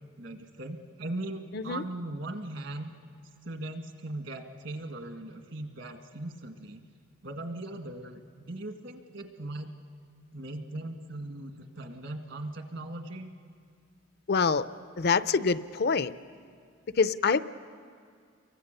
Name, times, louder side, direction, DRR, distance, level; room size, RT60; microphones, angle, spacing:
voice 1, 0.0-3.0 3.4-6.8 7.2-9.7 10.3-13.3, right 1 dB, 65° right, 5 dB, 2.0 m, -39 dB
voice 2, 14.3-14.7 15.0-16.1 17.0-17.4, left 5 dB, 55° left, 14 dB, 0.6 m, -25 dB
29.5 x 23.5 x 6.8 m, 2.2 s
head